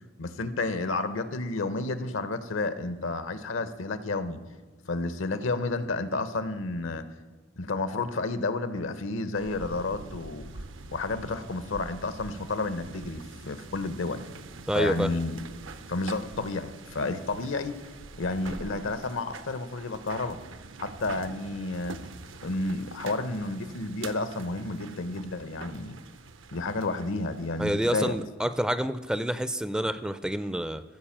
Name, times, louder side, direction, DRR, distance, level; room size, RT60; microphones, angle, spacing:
voice 1, 0.2-4.4 4.8-7.0 7.6-10.5 10.9-14.2 14.7-15.4 15.9-17.8 18.2-20.4 20.8-22.0 22.4-26.0 26.5-28.2, left 3 dB, 75° left, 12 dB, 0.8 m, -31 dB
sound 1, 9.3-28.3, right 3 dB, 75° right, 0.7 m, -45 dB
voice 2, 14.7-15.1 27.6-30.8, right 1 dB, 5° right, 13 dB, 0.4 m, -28 dB
14.5 x 5.1 x 7.3 m, 1.5 s
head